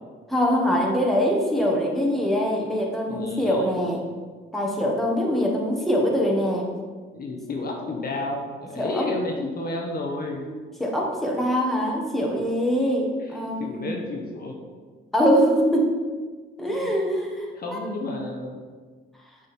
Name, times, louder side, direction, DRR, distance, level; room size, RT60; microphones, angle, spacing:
voice 1, 0.3-4.0 4.5-6.7 8.8-9.1 10.4-13.9 15.1-15.9 16.6-17.8, equal, ahead, -2 dB, 1.5 m, -23 dB
voice 2, 3.1-3.7 7.1-10.5 13.2-14.6 16.7-16.9 17.5-18.6, left 2 dB, 50° left, 1 dB, 1.1 m, -31 dB
7.1 x 5.1 x 4.3 m, 1.5 s
cardioid pair, 90°, 20 cm